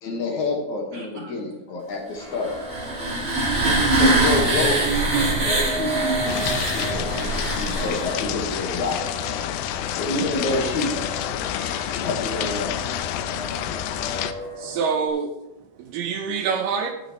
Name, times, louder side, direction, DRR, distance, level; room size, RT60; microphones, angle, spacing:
voice 1, 0.0-2.5 4.0-5.0 5.3-9.0 10.0-10.9 11.9-12.8, left 2 dB, 60° left, 1 dB, 2.6 m, -28 dB
voice 2, 0.9-1.3 9.4-10.0 12.7-12.9 13.8-14.8 15.8-16.0, right 1 dB, 40° right, -2 dB, 3.3 m, -50 dB
sound 1, 2.2-15.1, right 1 dB, 5° left, 0.7 m, -36 dB
sound 2, 2.4-8.3, right 2 dB, 25° right, 1.6 m, -23 dB
sound 3, 6.3-14.3, left 11 dB, 80° left, 2.4 m, -28 dB
voice 3, 14.6-15.4 15.8-17.0, right 6 dB, 75° right, 5 dB, 2.3 m, -26 dB
16.0 x 9.1 x 3.0 m, 0.99 s
omnidirectional pair, 4.2 m